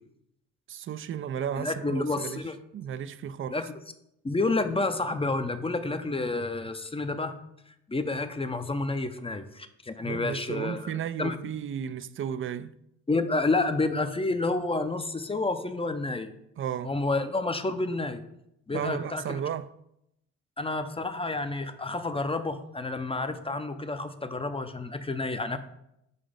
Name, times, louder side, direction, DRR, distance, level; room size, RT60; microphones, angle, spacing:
voice 1, 0.7-2.5 2.7-3.6 10.0-12.7 16.6-16.9 18.7-19.7, right 9 dB, 35° right, 0.4 m, -34 dB
voice 2, 1.6-2.6 3.5-3.7 4.2-7.3 7.9-10.9 11.2-11.4 13.1-16.3 16.8-18.2 18.7-19.4 20.6-25.6, left 3 dB, 15° left, 0.6 m, -29 dB
5.2 x 4.1 x 4.9 m
hypercardioid pair, 50°, 36 cm